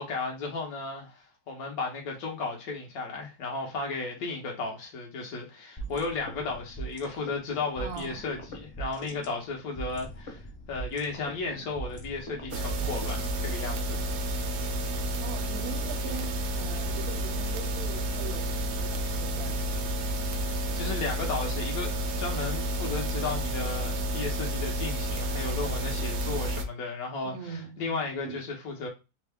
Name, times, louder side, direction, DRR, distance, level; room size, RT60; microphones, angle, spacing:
voice 1, 0.0-14.1 20.3-21.9 22.2-28.9, left 3 dB, 70° left, 1.5 m, -34 dB
sound 1, 5.8-13.7, right 3 dB, 30° left, 0.7 m, -41 dB
voice 2, 7.8-8.3 15.2-20.0 27.2-28.4, right 6 dB, 80° right, 1.3 m, -42 dB
sound 2, 12.5-26.6, right 1 dB, 65° right, 0.7 m, -30 dB
3.5 x 2.1 x 3.5 m
omnidirectional pair, 1.6 m